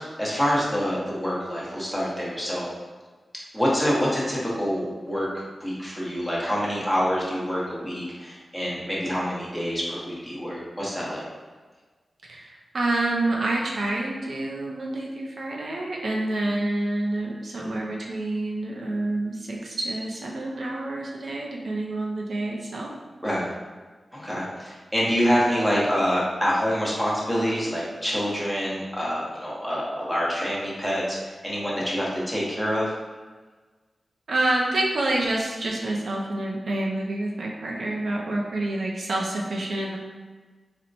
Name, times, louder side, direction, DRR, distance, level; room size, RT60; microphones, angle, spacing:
voice 1, 0.0-2.7 3.5-11.2 23.2-23.5 24.1-32.9, equal, ahead, -6 dB, 0.8 m, -26 dB
voice 2, 12.2-22.9 34.3-40.0, right 2 dB, 65° right, -1 dB, 0.4 m, -28 dB
4.3 x 2.1 x 2.6 m, 1.4 s
wide cardioid pair, 100°, 0 cm